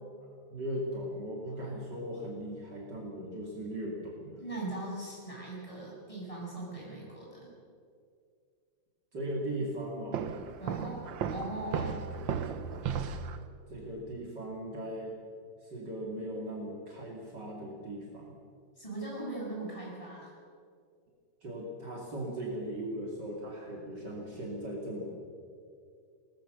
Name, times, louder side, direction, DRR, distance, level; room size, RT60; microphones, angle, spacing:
voice 1, 0.5-4.4 9.1-10.4 13.7-15.1 15.6-18.3 21.4-25.1, right 1 dB, 60° right, -2 dB, 3.3 m, -38 dB
voice 2, 4.4-7.5 10.6-11.0 11.3-12.0 18.8-20.3, right 2 dB, 15° left, -5 dB, 7.9 m, -39 dB
Walk footsteps, 10.1-13.4, right 7 dB, 75° right, 1.7 m, -35 dB
22.5 x 18.5 x 6.7 m, 2.3 s
omnidirectional pair, 2.1 m